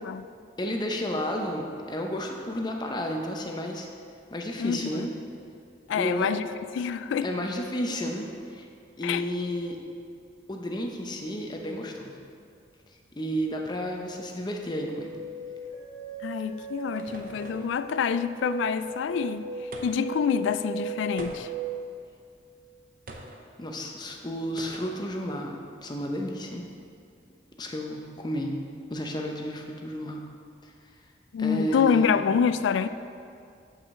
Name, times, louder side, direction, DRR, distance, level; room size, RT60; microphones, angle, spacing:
voice 1, 0.6-3.9 4.3-5.1 5.9-6.3 7.2-8.7 9.0-9.8 10.5-12.2 13.1-15.2 23.6-26.7 27.6-28.6 28.9-30.2 31.4-32.2, equal, 25° left, 1 dB, 0.7 m, -32 dB
voice 2, 4.6-5.1 5.9-6.5 6.7-7.3 9.0-9.2 16.2-19.5 19.8-21.5 31.3-32.9, left 7 dB, 85° left, 13 dB, 0.3 m, -26 dB
sound 1, 14.8-22.0, right 4 dB, 55° left, 1.3 m, -37 dB
sound 2, 16.3-17.8 19.7-20.2 21.2-21.7 23.1-23.4 24.6-25.0, right 2 dB, 50° right, 0.7 m, -44 dB
6.1 x 5.0 x 6.3 m, 2.4 s
head